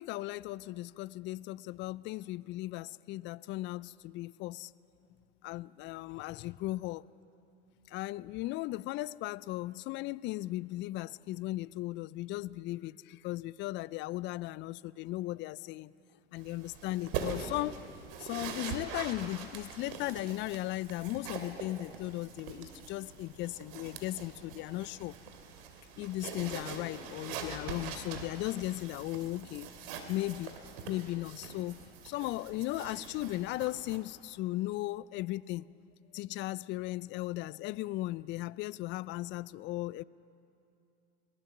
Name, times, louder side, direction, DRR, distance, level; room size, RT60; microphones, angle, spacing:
voice 1, 0.0-4.7 5.4-7.0 7.9-15.9 16.3-17.8 18.2-25.2 26.0-29.7 30.1-30.5 30.9-31.8 32.0-35.6 36.1-40.0, left 17 dB, 40° left, 20 dB, 0.5 m, -37 dB
sound 1, 16.4-34.0, right 6 dB, 60° right, 2.9 m, -43 dB
22.0 x 19.5 x 7.2 m, 2.7 s
hypercardioid pair, 90°, 31 cm